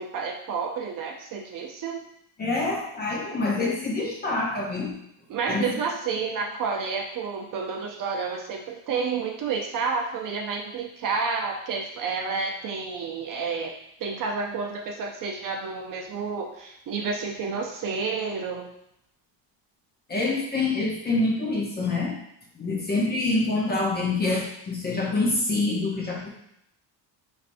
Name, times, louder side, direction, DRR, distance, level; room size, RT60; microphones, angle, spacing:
voice 1, 0.0-2.1 5.3-13.7 14.0-18.7, right 5 dB, 45° right, 1 dB, 0.5 m, -30 dB
voice 2, 2.4-4.9 5.5-5.7 20.1-22.1 22.5-26.3, left 2 dB, 20° left, -3 dB, 0.5 m, -26 dB
4.1 x 3.3 x 2.5 m, 0.75 s
cardioid pair, 170°, 45 cm